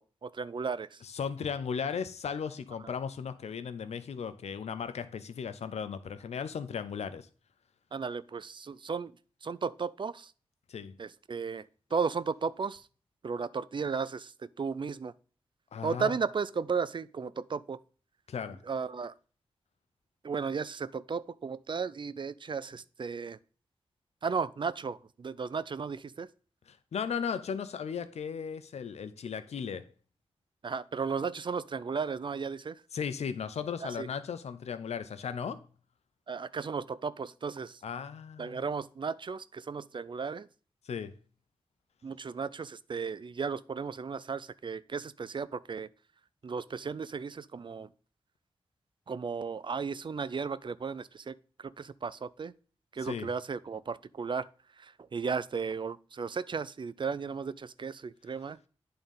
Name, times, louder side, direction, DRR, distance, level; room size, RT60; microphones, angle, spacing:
voice 1, 0.0-1.0 2.8-2.9 7.9-9.1 9.4-10.3 11.0-12.9 13.2-15.1 15.8-17.8 18.6-19.1 20.2-23.4 24.2-26.3 30.6-32.8 33.8-34.1 36.3-37.8 38.4-40.5 42.0-45.9 46.4-47.9 49.1-52.5 52.9-54.5 54.8-58.6, right 5 dB, 50° right, 0.4 m, -35 dB
voice 2, 1.0-7.3 10.7-11.0 15.7-16.1 18.3-18.6 26.7-29.9 32.9-35.6 37.8-38.6 40.9-41.1 53.0-53.3, left 6 dB, 85° left, 0.6 m, -36 dB
8.8 x 3.8 x 5.3 m
cardioid pair, 50°, 11 cm